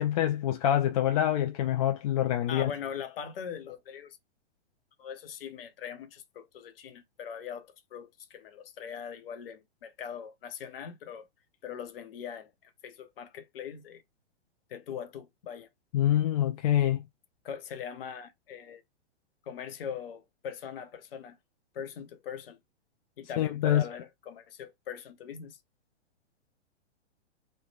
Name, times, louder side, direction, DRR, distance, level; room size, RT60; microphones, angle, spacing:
voice 1, 0.0-2.7 15.9-17.0 23.4-23.8, left 11 dB, 35° left, 0.4 m, -26 dB
voice 2, 2.5-4.2 5.0-11.3 11.6-14.0 14.7-15.7 17.4-18.8 19.4-21.4 21.7-22.6 23.2-25.6, left 8 dB, 55° left, 0.9 m, -41 dB
3.2 x 2.3 x 3.1 m
figure-of-eight pair, 110°, 34 cm